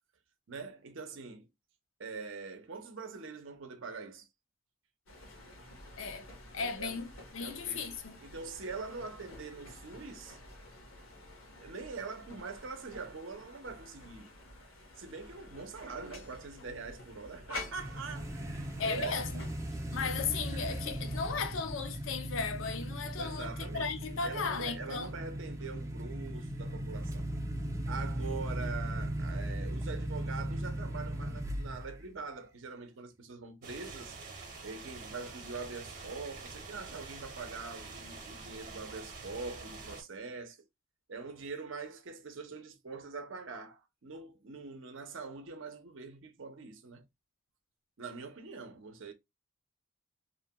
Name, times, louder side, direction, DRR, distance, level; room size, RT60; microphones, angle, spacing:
voice 1, 0.5-1.5 2.0-4.3 6.6-7.0 7.4-10.4 11.6-14.3 15.0-19.5 19.9-20.0 23.2-23.9 24.2-27.3 27.9-34.2 34.6-40.6 41.1-47.1 48.0-49.1, right 4 dB, 65° right, 0.6 m, -43 dB
sound 1, 5.1-21.6, left 2 dB, 85° left, 1.0 m, -50 dB
voice 2, 6.5-8.2 18.8-19.4 19.9-25.1, left 5 dB, 70° left, 0.5 m, -36 dB
sound 2, 17.8-32.0, right 1 dB, 15° right, 0.4 m, -38 dB
sound 3, 33.6-40.0, right 4 dB, 40° right, 0.8 m, -47 dB
2.8 x 2.2 x 2.7 m
head